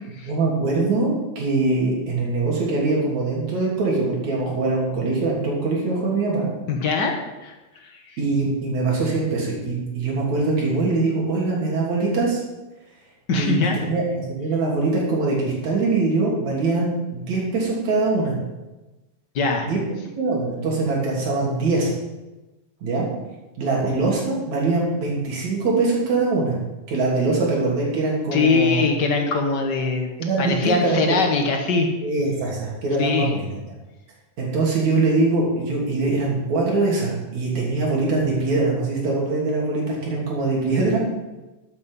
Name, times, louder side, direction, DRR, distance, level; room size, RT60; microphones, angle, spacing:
voice 1, 0.3-6.5 8.2-12.4 13.3-13.5 13.8-14.0 14.3-18.3 19.6-19.8 20.2-21.9 22.8-23.1 23.6-26.6 26.9-28.9 30.2-31.0 32.0-33.5 34.4-41.0, right 3 dB, 65° right, -3 dB, 4.2 m, -22 dB
voice 2, 6.7-7.1 7.4-7.5 7.8-7.9 13.3-13.7 19.3-19.7 28.3-30.1 30.4-31.9 33.0-33.3, left 4 dB, 50° left, 3 dB, 1.4 m, -21 dB
11.5 x 8.5 x 5.5 m, 1.1 s
omnidirectional pair, 3.6 m